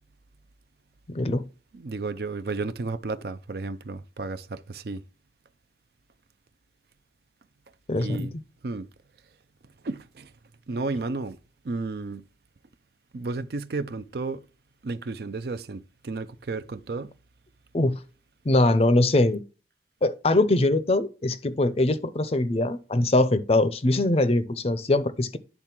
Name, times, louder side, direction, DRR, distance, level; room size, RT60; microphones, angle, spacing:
voice 1, 1.1-1.4 7.9-8.3 17.7-17.9 18.5-19.4 20.0-25.4, left 2 dB, 35° left, 0.5 m, -22 dB
voice 2, 1.7-5.0 8.0-8.3 8.6-8.9 9.8-10.3 10.7-11.4 11.6-12.3 13.1-14.4 14.8-17.1, right 3 dB, 60° right, 0.5 m, -32 dB
10.0 x 3.6 x 5.9 m
head